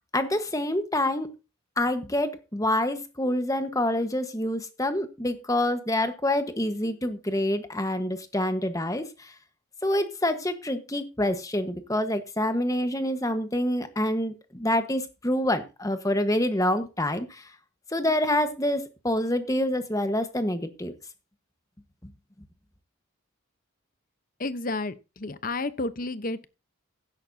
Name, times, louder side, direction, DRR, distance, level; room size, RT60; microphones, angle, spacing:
voice 1, 0.1-1.3 1.8-9.3 9.8-17.5 17.9-20.9, left 1 dB, 15° left, 1.3 m, -27 dB
voice 2, 24.4-26.5, left 2 dB, 40° left, 0.9 m, -31 dB
15.0 x 11.0 x 2.8 m
head